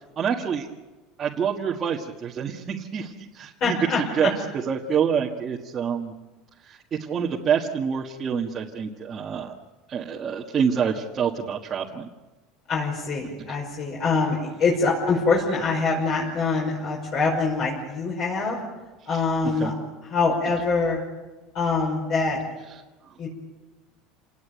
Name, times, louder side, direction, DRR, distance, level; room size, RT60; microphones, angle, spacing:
voice 1, 0.2-0.7 1.2-3.8 4.2-4.3 4.7-6.1 6.7-9.5 9.9-12.1 19.6-19.7, right 7 dB, 25° right, -2 dB, 1.7 m, -27 dB
voice 2, 3.6-4.3 12.7-18.6 19.1-19.7 20.1-21.0 21.5-22.4 23.2-23.3, left 4 dB, 40° left, -2 dB, 5.7 m, -24 dB
29.0 x 18.5 x 9.3 m, 1.2 s
cardioid pair, 160°, 0 cm